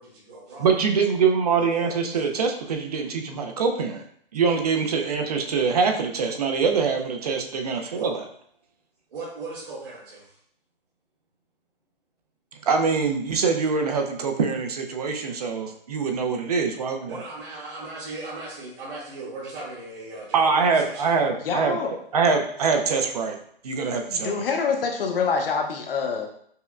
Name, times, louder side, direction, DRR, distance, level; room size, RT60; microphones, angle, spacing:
voice 1, 0.0-0.7 1.6-2.3 7.9-8.1 9.1-10.4 17.1-21.1, right 2 dB, 65° right, -8 dB, 1.5 m, -38 dB
voice 2, 0.6-4.0 4.3-8.2 12.6-17.2 20.3-21.8 22.1-23.4 23.6-24.4, right 5 dB, 45° right, 4 dB, 0.5 m, -24 dB
voice 3, 21.4-21.9 24.1-26.3, left 5 dB, 70° left, 4 dB, 0.7 m, -26 dB
5.4 x 2.1 x 2.4 m, 0.63 s
hypercardioid pair, 165°, 29 cm